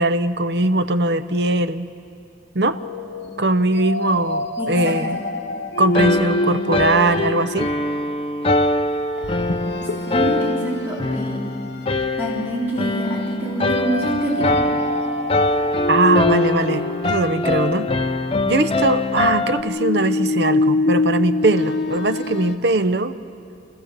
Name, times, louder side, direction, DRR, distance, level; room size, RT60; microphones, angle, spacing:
voice 1, 0.0-1.9 2.5-2.8 3.4-5.2 5.8-7.7 15.9-17.9 18.4-23.2, right 2 dB, 75° right, 12 dB, 0.8 m, -20 dB
sound 1, 2.8-8.1 9.2-10.4 10.9-11.1 11.6-12.1 13.8-18.2 19.5-22.6, left 2 dB, 75° left, 0.9 m, -25 dB
voice 2, 4.6-5.0 10.1-11.4 12.2-14.6, right 1 dB, 10° right, -6 dB, 3.6 m, -26 dB
sound 2, 6.0-19.6, left 2 dB, 30° left, 0.6 m, -23 dB
28.5 x 14.5 x 7.3 m, 2.6 s
head